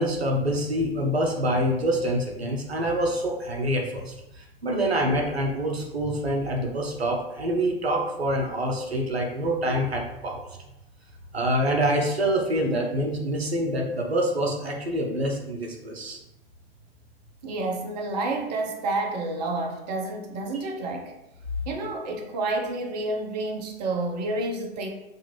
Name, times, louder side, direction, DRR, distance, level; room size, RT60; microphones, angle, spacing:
voice 1, 0.0-10.4 11.3-16.2, equal, 85° right, 0 dB, 0.5 m, -26 dB
voice 2, 17.4-21.1 21.7-24.9, right 2 dB, 45° right, 2 dB, 0.5 m, -29 dB
2.5 x 2.4 x 2.9 m, 0.91 s
figure-of-eight pair, 95°, 31 cm